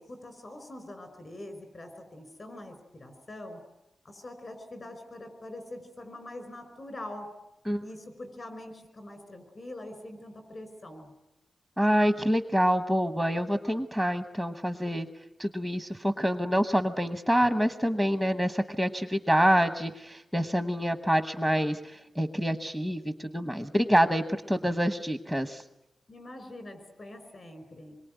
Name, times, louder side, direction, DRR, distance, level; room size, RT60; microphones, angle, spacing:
voice 1, 0.0-3.6 4.0-7.3 7.8-11.1 26.1-27.9, left 1 dB, 30° left, 8 dB, 5.2 m, -44 dB
voice 2, 11.8-15.1 15.4-25.6, equal, 5° left, 8 dB, 0.9 m, -26 dB
26.5 x 23.0 x 9.2 m, 0.90 s
wide cardioid pair, 175°, 0 cm